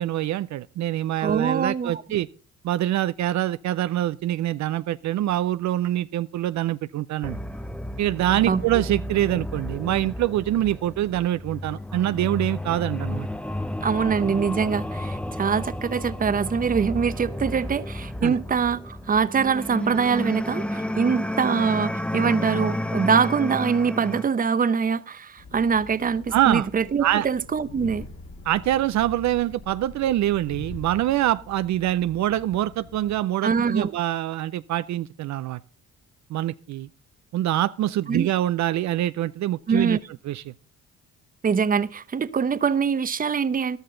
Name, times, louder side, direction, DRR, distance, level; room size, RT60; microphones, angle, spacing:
voice 1, 0.0-2.3 2.6-7.4 8.0-13.3 18.2-18.3 26.3-26.7 27.0-27.3 28.4-35.6 36.3-36.9 37.3-40.0 40.2-40.4, right 13 dB, 65° right, 0.5 m, -25 dB
voice 2, 1.2-2.0 8.5-8.6 13.8-28.1 33.4-33.9 38.1-38.3 39.7-40.0 41.4-43.8, right 6 dB, 30° right, 0.7 m, -24 dB
sound 1, 7.2-24.2, left 1 dB, 5° left, 0.7 m, -31 dB
Train, 25.4-33.2, left 3 dB, 50° left, 2.1 m, -43 dB
13.5 x 12.0 x 3.8 m
cardioid pair, 90°, 30 cm